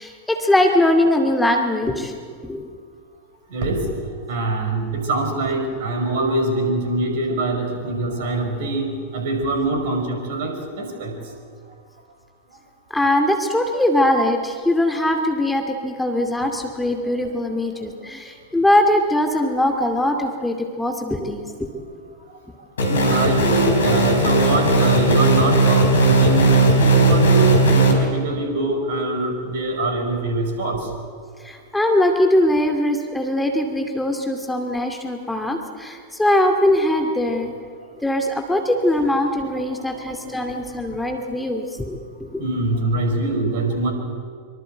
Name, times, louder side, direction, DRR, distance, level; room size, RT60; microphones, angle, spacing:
voice 1, 0.0-2.7 12.9-21.7 31.4-37.5 38.0-42.5, left 1 dB, 5° left, 3 dB, 2.4 m, -21 dB
voice 2, 3.5-3.9 4.3-11.3 16.8-16.9 17.3-17.4 17.8-17.9 22.8-30.9 37.3-37.4 39.7-40.6 42.4-43.9, right 2 dB, 55° right, 5 dB, 5.6 m, -24 dB
sound 1, 22.8-27.9, right 2 dB, 70° left, 4.5 m, -16 dB
24.5 x 24.0 x 7.9 m, 2.1 s
figure-of-eight pair, 90°, 0 cm